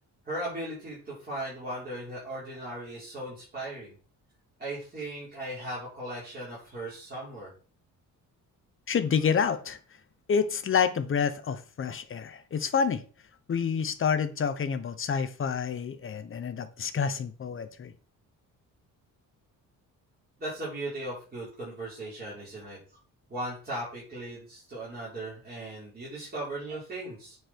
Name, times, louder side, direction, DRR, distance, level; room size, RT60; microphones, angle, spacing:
voice 1, 0.2-3.9 4.6-7.5 20.4-22.8 23.3-27.4, right 1 dB, 25° right, -8 dB, 4.7 m, -37 dB
voice 2, 8.9-9.8 10.3-13.0 13.5-17.9, left 6 dB, 35° left, 10 dB, 0.9 m, -28 dB
8.9 x 4.9 x 4.6 m, 0.39 s
cardioid pair, 140°, 35 cm